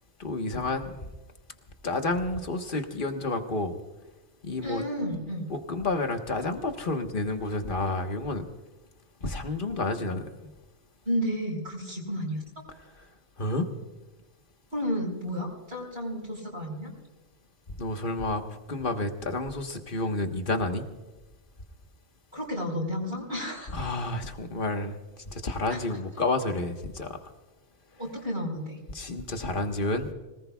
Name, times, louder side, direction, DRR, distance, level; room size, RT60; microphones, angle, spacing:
voice 1, 0.2-0.9 1.8-3.7 4.4-4.8 5.5-8.5 9.2-10.2 13.4-13.7 17.8-20.8 23.7-25.0 25.3-27.2 28.9-30.1, left 2 dB, 50° left, 5 dB, 1.5 m, -30 dB
voice 2, 4.6-5.5 11.0-12.4 14.7-16.9 22.3-23.9 25.7-25.8 28.0-28.8, equal, 50° right, -3 dB, 4.5 m, -32 dB
25.5 x 19.0 x 2.3 m, 1.2 s
omnidirectional pair, 1.2 m